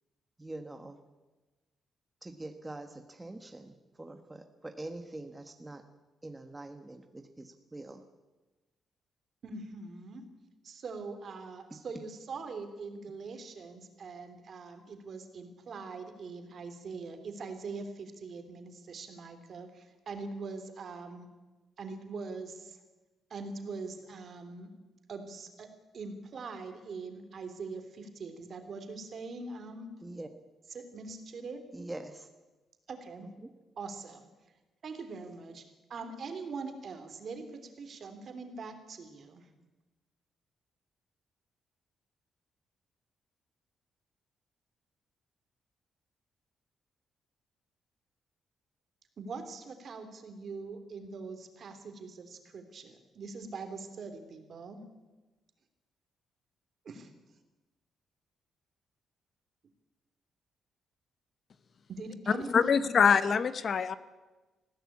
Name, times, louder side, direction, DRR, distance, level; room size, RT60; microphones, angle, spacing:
voice 1, 0.4-1.0 2.2-5.8 6.2-8.0 11.7-12.0 30.0-30.3 31.7-32.3 33.2-33.5, right 2 dB, 15° right, 6 dB, 1.2 m, -44 dB
voice 2, 9.4-10.2 10.6-21.3 21.8-22.8 23.3-24.7 25.1-29.9 30.7-31.6 32.9-33.3 33.8-34.3 34.8-35.6 35.9-39.5 49.2-54.8 56.8-57.1 61.9-62.8, right 4 dB, 50° right, 7 dB, 2.9 m, -42 dB
voice 3, 62.5-63.9, left 6 dB, 45° left, 14 dB, 0.9 m, -24 dB
20.5 x 15.5 x 8.5 m, 1.2 s
cardioid pair, 135°, 0 cm